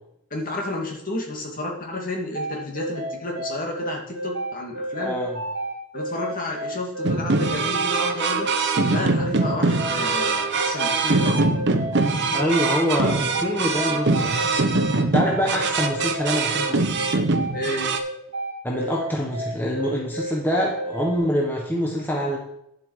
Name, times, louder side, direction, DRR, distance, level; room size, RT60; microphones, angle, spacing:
voice 1, 0.3-5.2 5.9-8.5 8.9-11.5 17.5-17.9, left 1 dB, 40° left, 0 dB, 2.3 m, -31 dB
sound 1, 2.3-21.2, right 1 dB, 75° right, 2.3 m, -31 dB
voice 2, 5.0-5.3 12.3-14.4 14.9-16.9 18.6-22.4, equal, 10° left, -2 dB, 1.4 m, -25 dB
sound 2, 7.0-18.0, right 3 dB, 55° right, 0.9 m, -23 dB
10.0 x 7.7 x 4.8 m, 0.78 s
head